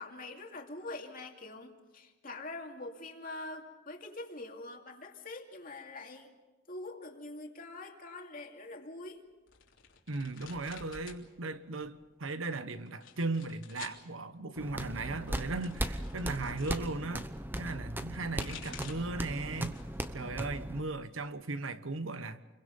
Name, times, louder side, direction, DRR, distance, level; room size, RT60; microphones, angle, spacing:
voice 1, 0.0-6.3 6.7-9.3, left 2 dB, 45° left, 2.6 m, -44 dB
sound 1, 9.5-11.2 11.5-12.2 12.9-14.0 15.0-16.8 18.0-19.2 19.6-20.1 20.4-21.4, left 7 dB, 80° left, 3.3 m, -51 dB
voice 2, 10.1-17.3 17.6-19.8 20.1-22.4, right 3 dB, 90° right, 1.2 m, -37 dB
sound 2, 14.6-20.8, right 1 dB, 10° right, 0.9 m, -38 dB
29.0 x 23.0 x 5.4 m
head